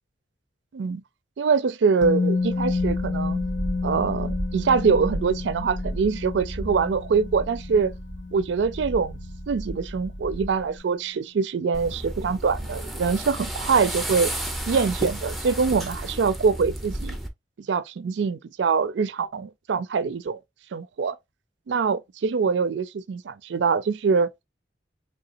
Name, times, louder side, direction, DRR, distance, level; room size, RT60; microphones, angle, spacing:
voice 1, 1.4-3.4 3.8-7.9 8.3-9.2 9.5-14.3 14.7-17.2 17.7-20.4 20.7-21.2 21.7-24.3, right 5 dB, 85° right, 0.4 m, -24 dB
Musical instrument, 2.0-9.9 10.2-10.4, left 3 dB, 85° left, 0.6 m, -30 dB
sound 1, 2.4-10.8, equal, 65° left, 1.6 m, -35 dB
sound 2, 11.7-17.3, right 1 dB, ahead, 0.7 m, -32 dB
3.8 x 3.5 x 2.6 m
head